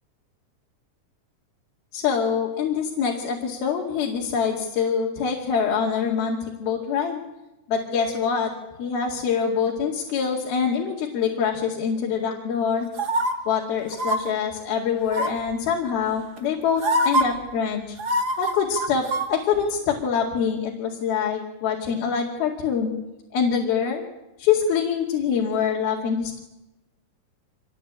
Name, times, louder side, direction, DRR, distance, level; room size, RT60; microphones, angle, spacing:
voice 1, 1.9-7.2 7.7-8.5 8.8-12.9 13.5-18.0 18.4-22.9 23.3-24.0 24.4-26.4, left 6 dB, 85° left, -1 dB, 4.2 m, -25 dB
sound 1, 13.0-13.3 13.9-14.2 15.1-15.5 16.4-16.5 16.8-17.2 18.0-19.3 19.6-19.7, right 1 dB, 35° right, 1.7 m, -23 dB
26.0 x 20.0 x 8.7 m, 0.99 s
omnidirectional pair, 4.2 m